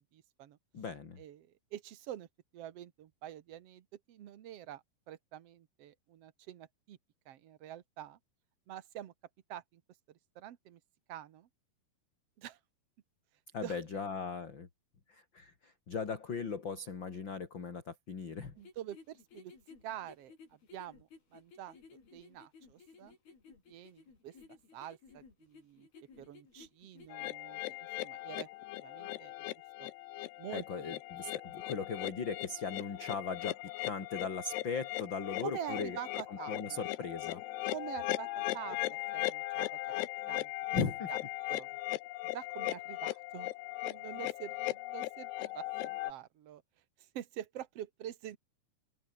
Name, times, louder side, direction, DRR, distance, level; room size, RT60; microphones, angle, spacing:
voice 1, 0.0-0.6 1.2-2.3 2.5-7.0 7.2-8.2 8.7-9.1 9.5-9.8 10.3-10.8 11.1-11.5 12.4-12.6 13.6-13.8 18.6-19.5 19.8-21.8 22.1-23.1 23.7-24.3 24.7-25.9 26.2-27.6 28.0-28.5 28.8-29.5 29.8-29.9 30.4-31.0 35.4-36.8 37.7-39.8 40.3-40.5 41.1-41.2 41.5-41.7 42.3-43.5 43.8-46.6 47.1-48.4, right 12 dB, 75° right, 1.4 m, -46 dB
voice 2, 0.7-1.2 13.5-14.7 15.1-18.6 30.5-33.6 33.8-36.0 36.3-37.4 40.7-41.1, left 5 dB, 30° left, 2.9 m, -38 dB
sound 1, 18.6-27.3, left 5 dB, 65° left, 8.2 m, -57 dB
sound 2, 27.1-46.1, left 18 dB, 80° left, 2.9 m, -38 dB
omnidirectional pair, 4.7 m